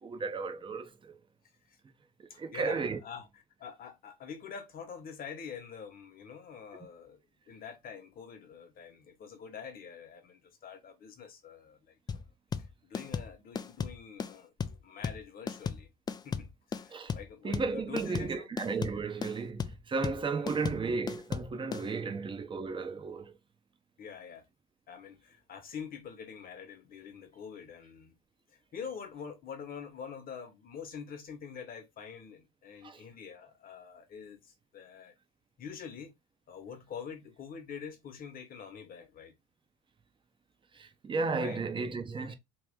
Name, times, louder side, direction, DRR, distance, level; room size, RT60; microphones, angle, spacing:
voice 1, 0.0-1.2 2.2-3.0 16.9-17.1 17.4-23.3 32.8-33.0 40.7-42.3, right 4 dB, 25° right, 0.7 m, -34 dB
voice 2, 2.3-3.3 3.6-7.2 7.5-12.2 12.8-15.9 16.2-18.5 20.4-20.7 22.0-22.1 24.0-24.4 24.9-28.2 28.7-35.1 35.6-36.1 36.5-39.3 41.3-41.6 42.2-42.4, left 7 dB, 45° left, 1.1 m, -46 dB
sound 1, 12.1-21.9, left 6 dB, 20° left, 0.3 m, -36 dB
3.1 x 3.0 x 3.5 m
supercardioid pair, 100°, 21 cm